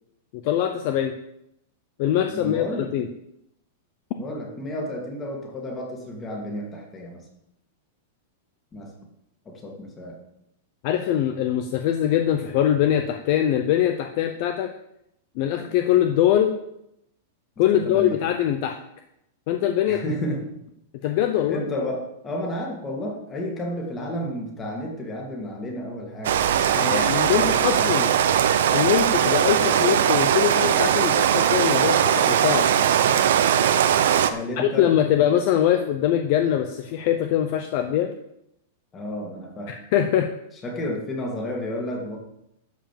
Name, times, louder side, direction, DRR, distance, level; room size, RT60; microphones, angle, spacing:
voice 1, 0.4-1.1 2.0-3.1 10.8-14.7 15.4-16.6 17.6-18.8 19.5-20.0 21.0-21.6 26.8-28.1 28.7-32.7 34.6-38.1 39.7-40.3, left 10 dB, 40° left, 6 dB, 0.7 m, -22 dB
voice 2, 2.3-2.9 4.2-7.3 8.7-8.9 9.5-10.2 17.8-18.2 19.8-20.5 21.0-21.2 21.5-26.3 26.7-28.0 34.3-34.9 38.9-39.8 40.6-42.2, left 1 dB, 15° left, 0 dB, 2.1 m, -32 dB
Rain, 26.2-34.3, right 9 dB, 65° right, 0.8 m, -20 dB
12.5 x 5.0 x 7.5 m, 0.79 s
supercardioid pair, 175°, 0 cm